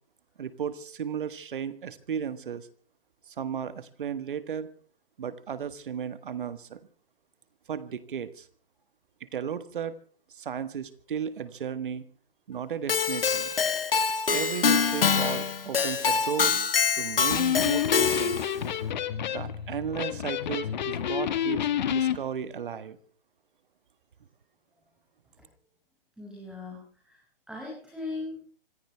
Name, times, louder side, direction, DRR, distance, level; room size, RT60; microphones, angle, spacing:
voice 1, 0.4-2.7 3.3-4.7 5.2-6.8 7.7-8.5 9.3-10.0 10.3-12.0 12.5-13.5 14.3-16.6 17.0-18.4 19.3-23.0, right 7 dB, 60° right, 13 dB, 1.6 m, -35 dB
Keyboard (musical), 12.9-18.6, left 6 dB, 70° left, 2.1 m, -25 dB
Electric guitar, 17.2-22.2, left 9 dB, 50° left, 1.5 m, -29 dB
voice 2, 26.2-27.2 27.5-28.4, left 3 dB, ahead, -4 dB, 5.9 m, -38 dB
26.0 x 15.0 x 3.4 m, 0.42 s
hypercardioid pair, 135°, 29 cm